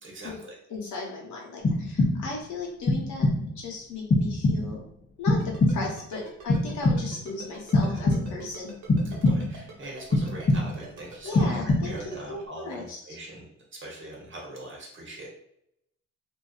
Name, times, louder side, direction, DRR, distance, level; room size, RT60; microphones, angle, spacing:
voice 1, 0.0-0.5 7.9-8.0 9.0-13.5 13.7-15.3, right 1 dB, 40° right, -2 dB, 1.0 m, -42 dB
voice 2, 0.7-3.3 3.6-4.8 5.2-8.7 11.2-13.2, left 3 dB, 70° left, -1 dB, 0.9 m, -36 dB
sound 1, 1.6-2.4 2.9-3.6 4.1-4.9 5.3-6.1 6.5-7.3 7.7-8.5 8.9-9.7 10.1-10.9 11.3-12.1, left 2 dB, 25° left, 0.5 m, -24 dB
Ringtone, 5.4-12.2, right 4 dB, 75° right, 1.0 m, -45 dB
2.6 x 2.3 x 2.4 m, 0.77 s
cardioid pair, 90°, 30 cm